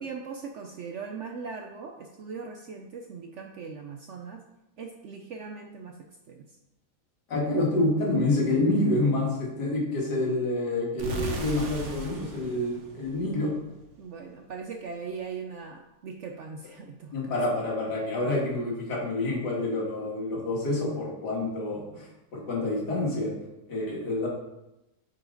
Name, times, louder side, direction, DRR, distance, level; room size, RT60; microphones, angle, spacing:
voice 1, 0.0-4.4 4.8-6.0 6.3-6.4 14.0-17.3, right 5 dB, 65° right, 3 dB, 0.7 m, -39 dB
voice 2, 7.3-13.5 17.1-22.1 22.3-23.3 23.7-24.3, left 2 dB, 80° left, -3 dB, 2.4 m, -27 dB
sound 1, 11.0-13.9, right 1 dB, 50° right, 1.2 m, -37 dB
8.6 x 4.8 x 3.9 m, 0.93 s
omnidirectional pair, 1.8 m